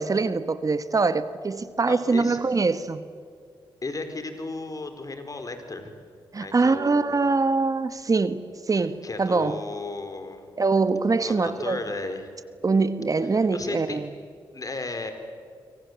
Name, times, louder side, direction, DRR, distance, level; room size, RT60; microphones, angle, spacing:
voice 1, 0.0-3.1 6.3-9.6 10.6-11.8 12.6-14.1, right 4 dB, 40° right, 1.3 m, -23 dB
voice 2, 1.9-2.4 3.8-5.9 6.4-7.3 8.7-10.5 11.2-12.3 13.2-14.0 14.5-15.1, left 3 dB, 40° left, 4.5 m, -35 dB
26.0 x 25.0 x 8.1 m
supercardioid pair, 50°, 9 cm